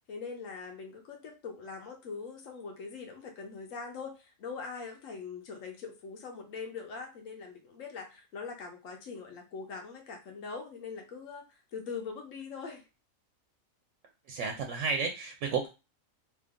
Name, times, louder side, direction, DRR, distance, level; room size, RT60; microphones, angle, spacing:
voice 1, 0.1-11.4 11.7-12.8, left 5 dB, 75° left, 3 dB, 1.2 m, -42 dB
voice 2, 14.3-15.7, right 5 dB, 70° right, 3 dB, 0.9 m, -32 dB
3.0 x 2.6 x 3.5 m, 0.29 s
omnidirectional pair, 1.4 m